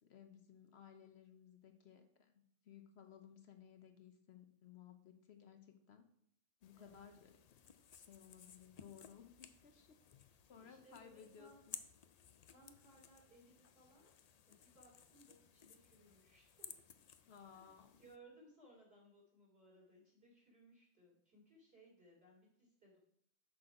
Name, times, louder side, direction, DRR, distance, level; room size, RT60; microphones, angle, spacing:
voice 1, 0.0-6.1 6.6-7.6 7.9-10.0 10.5-11.8 17.3-18.0, left 8 dB, 65° left, 7 dB, 0.9 m, -60 dB
sound 1, 6.6-18.2, left 7 dB, 85° left, 0.3 m, -58 dB
voice 2, 6.7-7.2 10.5-11.6 12.5-14.1 14.5-16.8 17.5-23.0, right 1 dB, 50° right, -3 dB, 3.4 m, -65 dB
6.2 x 6.1 x 4.8 m, 0.67 s
omnidirectional pair, 1.3 m